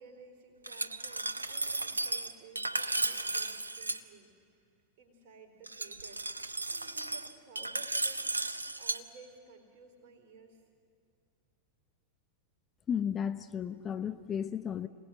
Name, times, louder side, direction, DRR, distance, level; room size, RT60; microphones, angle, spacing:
voice 1, 0.0-4.3 5.0-6.2 6.7-10.6, right 4 dB, 45° right, 4 dB, 4.5 m, -55 dB
Glass, 0.6-4.0 5.7-9.0, right 2 dB, 80° right, 0.8 m, -34 dB
voice 2, 12.9-14.9, left 8 dB, 25° left, 11 dB, 0.7 m, -34 dB
27.5 x 19.0 x 7.8 m, 2.6 s
figure-of-eight pair, 90°, 0 cm